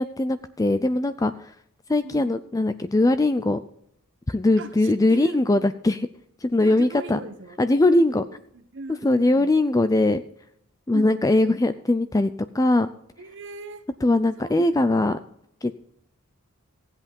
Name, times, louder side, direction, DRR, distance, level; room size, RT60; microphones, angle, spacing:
voice 1, 0.0-1.5 1.9-3.6 4.3-6.1 6.4-7.2 7.6-8.2 9.0-10.2 10.9-12.3 12.5-12.9 14.0-15.2 15.6-15.7, left 2 dB, 15° left, 0.4 m, -21 dB
voice 2, 2.0-2.4 4.6-5.4 6.6-7.6 7.9-9.5 10.9-11.1 13.2-13.9 14.4-15.2, right 2 dB, 60° right, 1.2 m, -39 dB
15.5 x 8.1 x 5.3 m
head